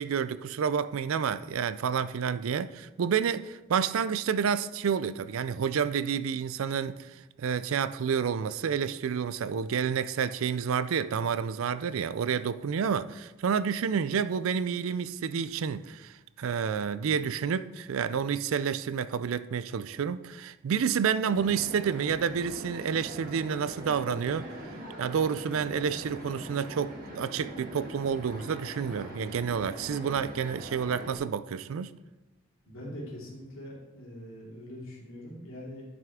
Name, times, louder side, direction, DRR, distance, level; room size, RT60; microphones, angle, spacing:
voice 1, 0.0-7.1 7.4-24.5 25.0-31.9, right 7 dB, 80° right, 0.4 m, -29 dB
sound 1, 21.3-31.2, right 1 dB, 45° right, 1.5 m, -42 dB
voice 2, 32.6-35.8, equal, 75° left, 2.9 m, -43 dB
10.5 x 5.8 x 3.6 m
head